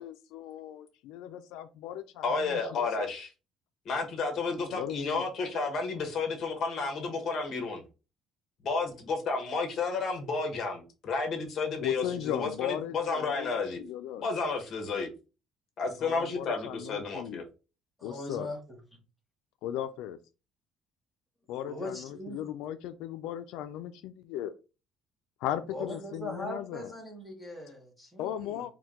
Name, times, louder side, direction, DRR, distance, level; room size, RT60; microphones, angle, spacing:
voice 1, 0.0-3.1 4.7-5.2 11.8-14.3 16.0-17.4 18.0-18.5 19.6-20.2 21.5-24.5 25.4-26.9 28.2-28.7, left 11 dB, 85° left, 0.3 m, -37 dB
voice 2, 2.2-3.3 3.8-7.8 8.6-13.8 14.2-15.1 15.8-17.4, left 4 dB, 40° left, 1.1 m, -31 dB
voice 3, 18.0-18.8 21.6-22.5 25.7-28.6, left 1 dB, ahead, 1.0 m, -40 dB
4.4 x 2.2 x 3.6 m
cardioid pair, 180°, 0 cm